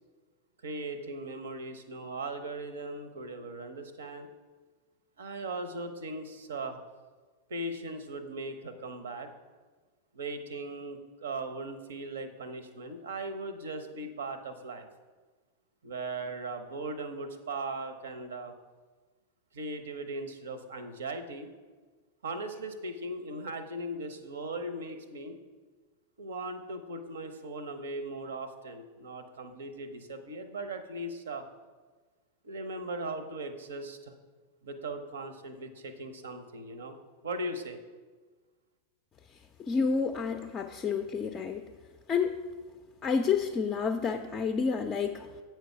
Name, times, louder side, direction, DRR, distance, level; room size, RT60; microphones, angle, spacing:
voice 1, 0.6-4.3 5.2-6.8 7.5-9.3 10.1-14.9 15.8-18.5 19.5-21.5 22.2-25.4 26.2-31.4 32.4-34.1 34.6-37.0 37.2-37.8, right 2 dB, 65° right, 9 dB, 0.7 m, -38 dB
voice 2, 39.7-41.7 42.1-42.4 43.0-45.3, left 5 dB, 25° left, 6 dB, 0.4 m, -29 dB
7.9 x 4.5 x 5.8 m, 1.4 s
figure-of-eight pair, 90°, 0 cm